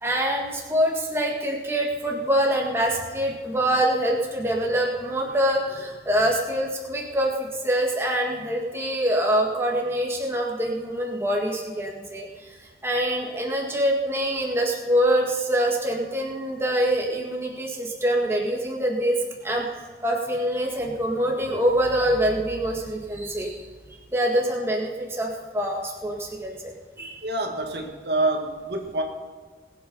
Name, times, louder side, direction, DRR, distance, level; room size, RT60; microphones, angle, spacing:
voice 1, 0.0-12.3 12.8-19.2 19.4-19.7 20.0-23.6 24.1-27.2, right 1 dB, 15° right, -1 dB, 1.8 m, -25 dB
voice 2, 27.2-29.0, right 2 dB, 70° right, 3 dB, 1.7 m, -26 dB
20.5 x 8.2 x 5.5 m, 1.5 s
head